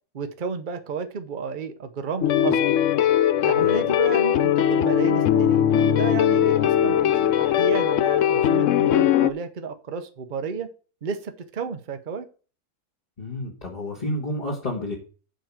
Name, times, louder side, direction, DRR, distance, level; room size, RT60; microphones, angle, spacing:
voice 1, 0.1-2.7 3.4-10.7 11.0-12.3, right 5 dB, 40° right, 9 dB, 0.9 m, -32 dB
sound 1, 2.2-9.3, left 10 dB, 65° left, 0.8 m, -20 dB
voice 2, 13.2-15.0, left 1 dB, 30° left, -3 dB, 2.0 m, -30 dB
7.6 x 5.3 x 7.5 m, 0.38 s
omnidirectional pair, 1.6 m